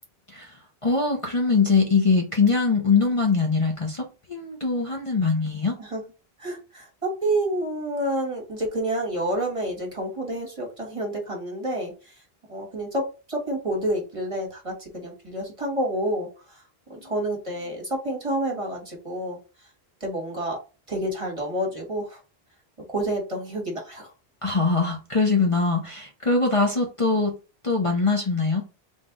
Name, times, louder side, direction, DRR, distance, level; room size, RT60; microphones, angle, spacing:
voice 1, 0.3-5.8 17.0-17.1 24.4-27.3 27.6-28.6, left 4 dB, 35° left, 0 dB, 0.8 m, -22 dB
voice 2, 6.4-12.2 12.5-16.6 16.9-19.4 20.0-20.6 20.9-22.2 22.9-24.1, right 1 dB, 30° right, -1 dB, 1.6 m, -29 dB
3.6 x 3.3 x 3.8 m, 0.32 s
omnidirectional pair, 1.0 m